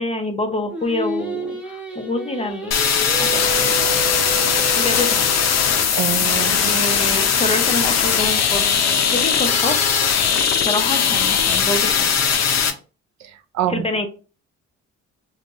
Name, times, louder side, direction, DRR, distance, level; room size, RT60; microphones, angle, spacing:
voice 1, 0.0-2.8 3.2-3.4 4.8-5.2 6.6-9.8 10.6-12.1 13.7-14.1, left 2 dB, 20° left, 0.6 m, -26 dB
Singing, 0.7-5.8, right 2 dB, 5° right, 1.0 m, -30 dB
sound 1, 2.7-12.7, left 7 dB, 60° left, 0.6 m, -19 dB
voice 2, 5.9-6.8 13.2-13.9, right 10 dB, 65° right, 0.5 m, -26 dB
2.6 x 2.3 x 3.9 m
cardioid pair, 90°, 30 cm